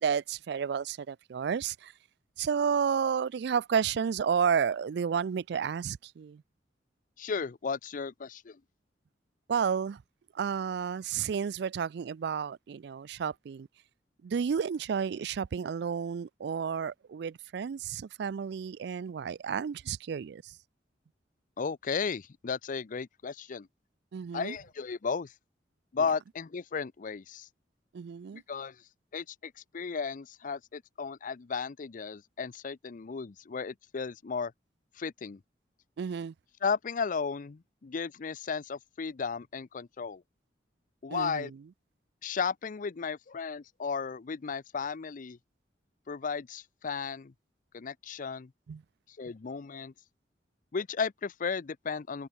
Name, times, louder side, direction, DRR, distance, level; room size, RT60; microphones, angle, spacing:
voice 1, 0.0-1.9 2.4-6.4 9.5-10.0 10.3-13.7 14.2-20.6 24.1-24.6 26.0-26.1 27.9-28.4 36.0-36.3 41.1-41.6 48.7-48.8, right 7 dB, 65° right, 0.4 m, -31 dB
voice 2, 7.2-8.6 21.6-23.7 24.3-25.3 25.9-27.5 28.3-28.8 29.1-34.5 35.0-35.4 36.6-40.2 41.0-41.5 42.2-45.4 46.1-47.3 47.7-48.5 49.2-49.9 50.7-52.3, left 5 dB, 50° left, 0.5 m, -34 dB
head